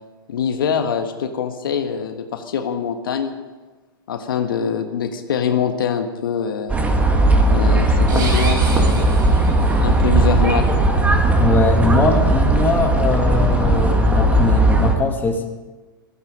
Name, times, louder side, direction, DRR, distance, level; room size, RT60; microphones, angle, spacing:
voice 1, 0.3-3.3 4.1-6.8 7.5-9.1 9.8-10.7, left 7 dB, 70° left, 6 dB, 1.5 m, -24 dB
winter lake with some crowd and distant traffic, 6.7-14.9, right 2 dB, 10° right, 1.8 m, -16 dB
sound 1, 8.0-10.0, right 3 dB, 60° right, 5.0 m, -31 dB
voice 2, 11.4-15.5, left 4 dB, 15° left, 3 dB, 2.0 m, -21 dB
16.5 x 14.5 x 5.3 m, 1.3 s
hypercardioid pair, 110°, 12 cm